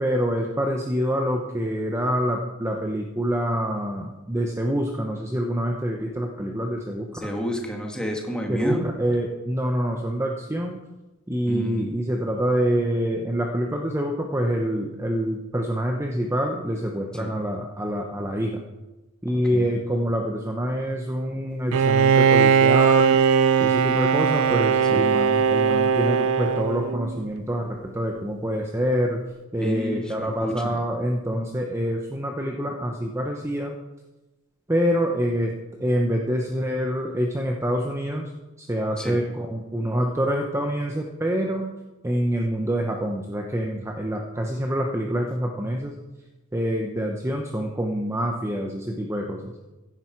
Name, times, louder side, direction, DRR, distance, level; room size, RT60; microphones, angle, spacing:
voice 1, 0.0-7.1 8.5-10.8 11.3-18.6 19.2-23.2 23.6-29.2 29.5-33.8 34.7-35.5 35.8-38.3 38.6-41.7 42.0-45.9 46.5-49.5, equal, 15° right, 1 dB, 1.0 m, -26 dB
voice 2, 7.1-8.8 11.5-11.9 17.1-17.3 19.5-19.7 24.9-25.0 29.6-30.7 39.0-39.2, equal, 5° left, 0 dB, 2.2 m, -30 dB
Bowed string instrument, 21.7-27.3, right 6 dB, 70° right, 0.4 m, -19 dB
15.5 x 11.0 x 4.7 m, 1.1 s
head